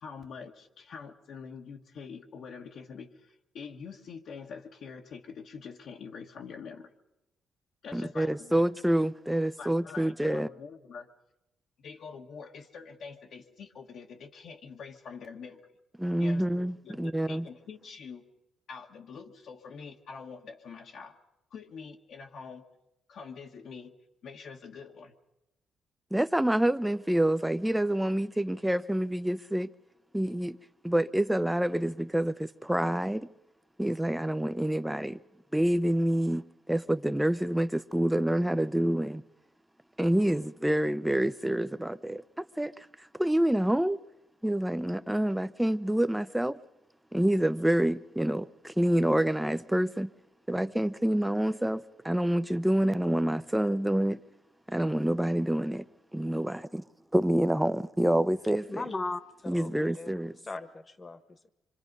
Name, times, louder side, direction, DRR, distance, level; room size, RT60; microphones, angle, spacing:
voice 1, 0.0-6.9 7.8-8.6 9.6-11.1 11.8-15.7 16.2-18.2 18.7-21.2 21.5-22.6 23.1-23.9 24.2-25.1, left 5 dB, 65° left, 1.5 m, -45 dB
voice 2, 7.9-10.5 16.0-17.5 26.1-29.7 30.1-30.6 30.8-33.3 33.8-35.2 35.5-39.2 40.0-42.9 43.2-44.0 44.4-46.6 47.1-50.1 50.5-54.2 54.7-55.8 56.1-56.8 57.1-58.8 59.5-60.3, right 1 dB, 5° right, 0.7 m, -27 dB
voice 3, 58.7-60.1 60.4-61.5, left 3 dB, 30° left, 1.4 m, -38 dB
25.5 x 25.0 x 5.4 m
cardioid pair, 90°, 0 cm